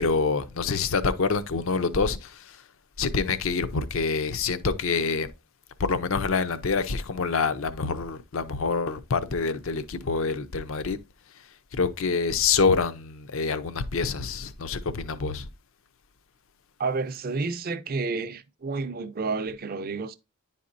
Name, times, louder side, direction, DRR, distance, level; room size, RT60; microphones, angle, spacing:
voice 1, 0.0-2.6 3.0-5.3 5.8-11.0 11.3-15.5, left 4 dB, 60° left, 0.5 m, -26 dB
voice 2, 16.8-20.2, right 4 dB, 40° right, 0.5 m, -30 dB
10.0 x 4.2 x 2.5 m
head